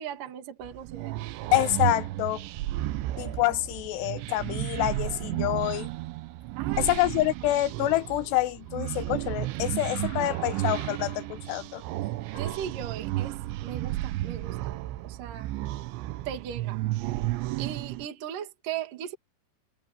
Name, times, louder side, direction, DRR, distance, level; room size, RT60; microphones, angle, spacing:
voice 1, 0.0-1.4 6.6-6.9 12.4-14.8 15.0-15.5 16.2-16.8 17.6-19.2, right 9 dB, 55° right, 3.3 m, -38 dB
sound 1, 0.6-18.1, right 16 dB, 85° right, 3.1 m, -33 dB
voice 2, 1.5-2.4 3.2-5.9 6.8-11.8, left 16 dB, 75° left, 3.0 m, -27 dB
omnidirectional pair, 5.1 m